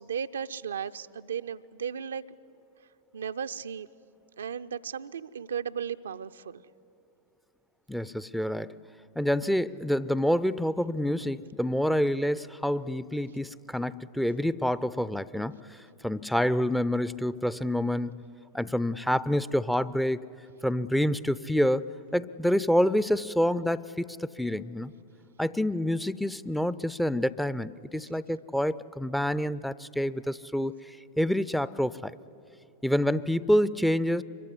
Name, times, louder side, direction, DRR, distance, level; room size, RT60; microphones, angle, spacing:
voice 1, 0.0-2.4 3.1-3.9 4.4-6.6, right 7 dB, 70° right, 10 dB, 0.5 m, -35 dB
voice 2, 7.9-8.8 9.2-15.8 16.0-18.1 18.5-20.2 20.6-21.9 22.1-24.9 25.4-32.1 32.8-34.2, equal, ahead, 17 dB, 0.5 m, -27 dB
25.5 x 23.0 x 9.8 m, 2.7 s
figure-of-eight pair, 90°, 0 cm